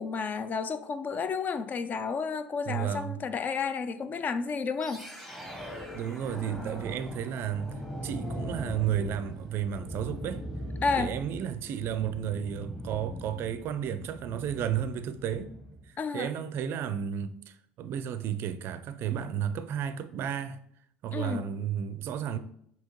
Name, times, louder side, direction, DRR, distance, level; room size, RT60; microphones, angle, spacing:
voice 1, 0.0-5.1 10.8-11.2 16.0-16.3 21.1-21.5, left 5 dB, 35° left, 0.4 m, -31 dB
voice 2, 2.7-3.2 5.9-10.4 11.0-15.5 15.8-20.6 21.0-22.4, right 9 dB, 55° right, 0.4 m, -33 dB
sound 1, 4.8-15.9, equal, 5° left, 1.0 m, -40 dB
5.5 x 2.8 x 3.0 m
hypercardioid pair, 70°, 5 cm